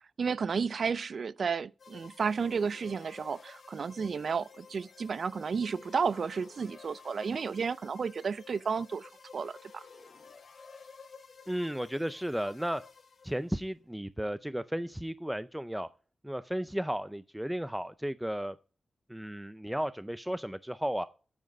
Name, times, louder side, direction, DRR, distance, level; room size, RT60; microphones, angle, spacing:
voice 1, 0.2-9.8, right 5 dB, 60° right, 0.4 m, -32 dB
sound 1, 1.8-13.6, left 5 dB, 60° left, 2.8 m, -53 dB
voice 2, 11.5-12.8 13.2-15.9 16.2-18.6 19.1-21.1, equal, 5° right, 0.5 m, -34 dB
9.4 x 7.6 x 4.9 m
wide cardioid pair, 100°, 0 cm